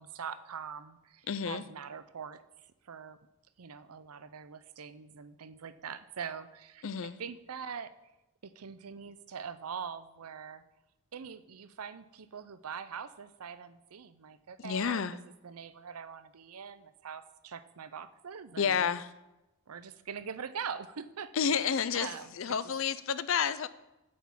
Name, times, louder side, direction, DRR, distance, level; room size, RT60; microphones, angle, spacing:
voice 1, 0.0-2.4 2.8-3.2 3.6-7.9 8.4-10.6 11.1-15.0 15.4-18.9 19.7-21.7 21.9-22.3 22.6-22.7, right 6 dB, 85° right, 13 dB, 0.6 m, -43 dB
voice 2, 1.3-1.6 6.8-7.1 14.6-15.1 18.6-19.1 21.3-23.7, left 7 dB, 60° left, 15 dB, 0.5 m, -30 dB
8.5 x 6.2 x 7.1 m, 0.98 s
head